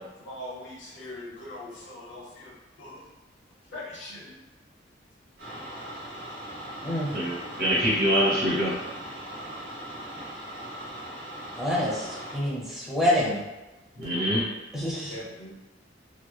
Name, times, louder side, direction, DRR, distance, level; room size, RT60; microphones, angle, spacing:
voice 1, 0.2-2.5 2.8-3.0 3.7-4.3 15.0-15.5, left 1 dB, 85° left, -3 dB, 0.7 m, -41 dB
sound 1, 5.4-12.4, equal, 80° right, 1.0 m, -39 dB
voice 2, 7.1-8.8 14.0-14.4, equal, 55° right, -7 dB, 1.0 m, -24 dB
voice 3, 11.6-12.1 12.3-13.4 14.7-15.2, left 1 dB, ahead, -7 dB, 0.6 m, -26 dB
2.8 x 2.2 x 2.2 m, 1.1 s
head